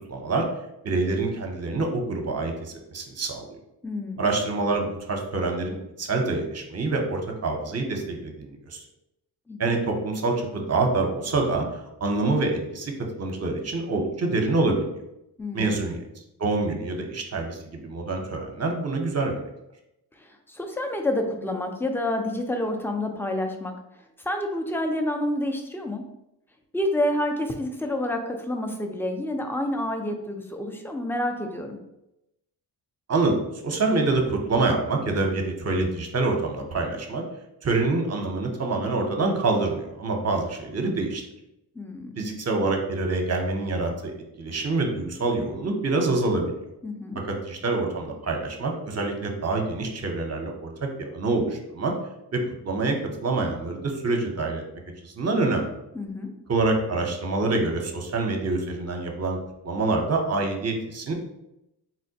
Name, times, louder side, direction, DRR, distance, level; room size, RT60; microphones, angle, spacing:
voice 1, 0.1-0.5 0.8-3.5 4.2-8.8 9.6-11.6 12.0-12.9 13.2-14.9 15.5-16.0 16.4-19.4 33.1-37.2 37.6-41.2 42.2-44.1 44.4-46.4 47.3-51.9 52.3-54.6 55.0-55.7 56.5-59.4 59.6-61.1, right 3 dB, 35° right, 3 dB, 0.7 m, -26 dB
voice 2, 3.8-4.3 9.5-9.6 15.4-15.8 20.2-23.8 24.2-26.0 26.7-31.8 41.8-42.3 46.8-47.2 55.9-56.3, left 1 dB, 5° left, 4 dB, 0.4 m, -28 dB
4.1 x 2.1 x 2.7 m, 0.87 s
cardioid pair, 70°, 44 cm